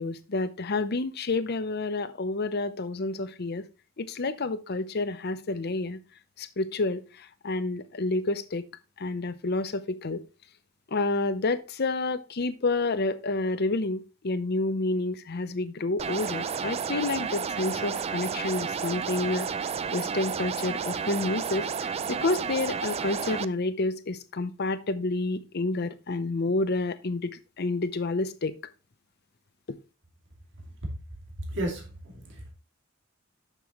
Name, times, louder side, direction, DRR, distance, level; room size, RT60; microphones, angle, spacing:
voice 1, 0.0-3.6 4.0-6.0 6.4-7.0 7.4-8.6 9.0-10.2 10.9-19.5 19.9-28.6, left 2 dB, 55° left, 0.7 m, -29 dB
sound 1, 16.0-23.5, right 6 dB, 30° right, 0.3 m, -31 dB
voice 2, 30.6-30.9 31.5-32.5, right 1 dB, 60° right, 2.5 m, -34 dB
9.4 x 6.9 x 3.1 m
head